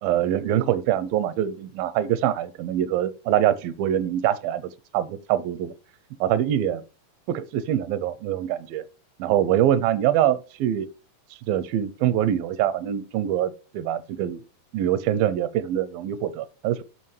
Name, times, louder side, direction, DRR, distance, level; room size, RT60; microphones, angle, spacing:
voice 1, 0.0-5.7 6.2-6.8 7.3-8.8 9.2-10.9 11.5-14.4 14.7-16.8, right 11 dB, 85° right, 2.3 m, -24 dB
13.0 x 4.9 x 3.2 m
omnidirectional pair, 4.2 m